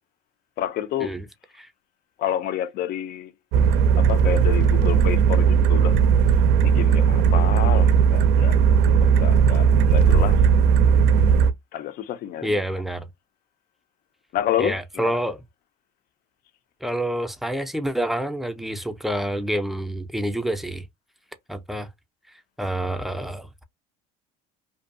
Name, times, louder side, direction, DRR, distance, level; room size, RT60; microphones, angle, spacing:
voice 1, 0.6-1.1 2.2-3.3 4.0-6.0 6.6-10.4 11.7-12.6 14.3-15.2, left 11 dB, 55° left, 0.5 m, -29 dB
sound 1, 3.5-11.5, right 7 dB, 65° right, 0.4 m, -17 dB
voice 2, 12.4-13.1 14.6-15.4 16.8-20.8 21.5-21.9 22.6-23.6, right 1 dB, ahead, 0.4 m, -27 dB
2.6 x 2.3 x 2.5 m
supercardioid pair, 100°, 19 cm